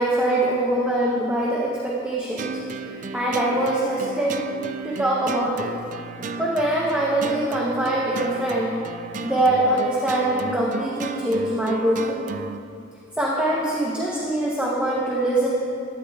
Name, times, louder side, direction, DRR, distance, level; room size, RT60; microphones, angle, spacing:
voice 1, 0.0-2.5 3.1-4.4 4.8-5.7 6.4-8.8 9.2-12.4 13.2-15.5, right 1 dB, 5° right, -5 dB, 0.7 m, -23 dB
sound 1, 2.4-12.6, right 4 dB, 40° right, 0.3 m, -34 dB
12.0 x 9.5 x 2.3 m, 2.5 s
head